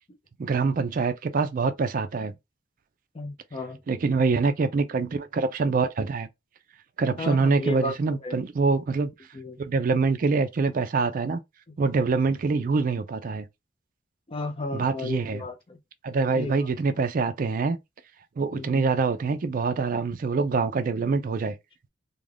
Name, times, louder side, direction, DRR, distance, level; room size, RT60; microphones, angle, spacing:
voice 1, 0.4-2.3 3.9-6.3 7.0-9.1 9.6-11.4 11.8-13.5 14.7-15.4 16.0-17.8 18.4-21.6, right 4 dB, 45° right, 0.4 m, -25 dB
voice 2, 3.1-3.8 7.2-8.4 9.3-9.6 12.6-12.7 14.3-15.8 16.3-16.7 18.5-18.9, left 2 dB, 30° left, 0.5 m, -34 dB
2.4 x 2.2 x 3.2 m
head